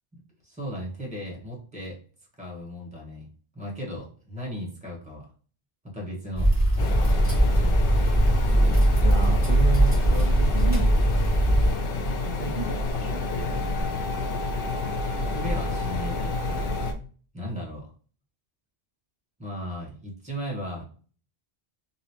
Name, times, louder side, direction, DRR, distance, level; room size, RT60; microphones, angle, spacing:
voice 1, 0.1-2.0 2.4-3.3 3.5-5.3 5.9-7.4 15.2-16.8 17.3-17.9 19.4-20.8, equal, 5° right, -2 dB, 1.2 m, -36 dB
sound 1, 6.4-11.8, right 1 dB, 10° left, 1.6 m, -20 dB
sound 2, 6.8-16.9, left 2 dB, 65° left, 0.7 m, -29 dB
voice 2, 9.0-10.9 12.1-13.6, right 6 dB, 45° right, 0 dB, 0.4 m, -33 dB
2.9 x 2.8 x 2.9 m, 0.40 s
omnidirectional pair, 1.1 m